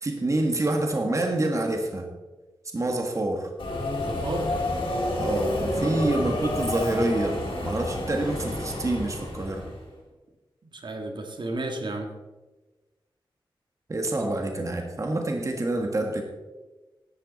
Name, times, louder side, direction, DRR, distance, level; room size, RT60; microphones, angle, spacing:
voice 1, 0.0-2.1 2.7-3.5 5.2-9.6 13.9-16.2, right 2 dB, 35° right, 3 dB, 1.6 m, -27 dB
Subway metro underground, 3.6-9.8, left 1 dB, 80° left, 4.3 m, -29 dB
voice 2, 4.0-4.5 5.8-6.1 10.7-12.1 14.1-14.3, right 2 dB, 60° right, 3 dB, 1.7 m, -33 dB
15.5 x 11.5 x 4.1 m, 1.2 s
wide cardioid pair, 115°, 9 cm